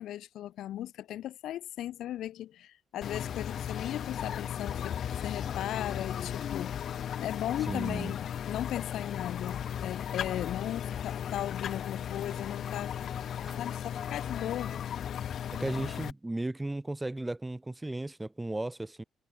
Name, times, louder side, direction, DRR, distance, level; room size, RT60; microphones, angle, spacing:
voice 1, 0.0-6.8 7.2-8.2 8.5-12.9 13.6-14.8, left 12 dB, 80° left, 1.4 m, -37 dB
sound 1, 3.0-16.1, left 9 dB, 65° left, 0.4 m, -36 dB
voice 2, 7.6-8.1 13.5-13.6 15.5-19.0, right 2 dB, 15° right, 0.4 m, -35 dB
cardioid pair, 90°, 0 cm